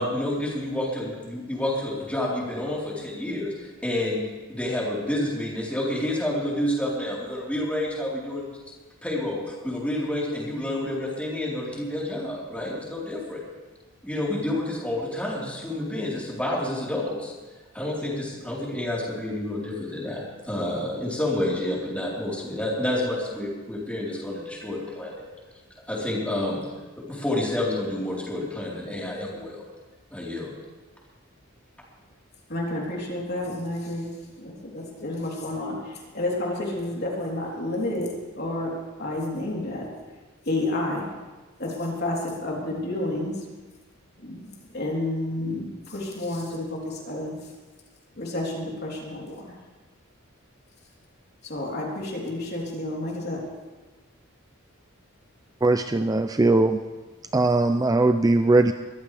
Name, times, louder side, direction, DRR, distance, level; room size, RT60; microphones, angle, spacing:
voice 1, 0.0-4.2 4.5-8.5 9.0-13.4 14.0-17.3 17.7-25.3 25.9-26.6 27.0-29.6 30.1-30.5, left 1 dB, 5° left, -5 dB, 4.0 m, -29 dB
voice 2, 32.5-39.8 40.5-41.1 41.6-43.3 44.2-47.4 48.2-49.5 51.4-53.4, left 1 dB, 50° left, -3 dB, 3.6 m, -30 dB
voice 3, 55.6-56.8 57.3-58.7, right 2 dB, 15° right, 8 dB, 0.4 m, -20 dB
22.5 x 14.5 x 3.4 m, 1.2 s
head